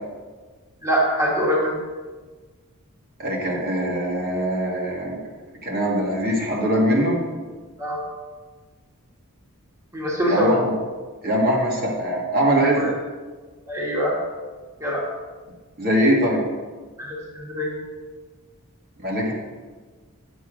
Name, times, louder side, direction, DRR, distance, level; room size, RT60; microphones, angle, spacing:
voice 1, 0.8-1.7 7.8-8.0 9.9-10.5 12.8-12.9 13.7-14.1 14.8-15.1 17.0-17.7, equal, 15° right, -4 dB, 1.7 m, -23 dB
voice 2, 3.2-5.2 5.6-7.2 10.3-10.7 11.2-12.9 15.8-16.4 19.0-19.3, equal, 40° right, -3 dB, 1.8 m, -22 dB
10.5 x 7.1 x 5.0 m, 1.4 s
head